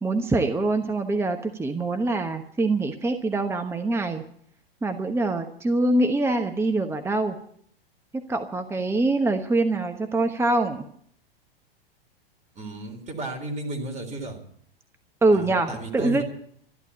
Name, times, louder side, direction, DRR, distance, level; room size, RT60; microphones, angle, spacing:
voice 1, 0.0-4.2 4.8-7.4 8.1-10.8 15.2-16.2, right 2 dB, 10° right, 7 dB, 1.1 m, -24 dB
voice 2, 12.5-14.4 15.3-16.2, right 2 dB, 25° right, 4 dB, 3.9 m, -33 dB
13.0 x 12.0 x 8.4 m, 0.64 s
hypercardioid pair, 105°, 30 cm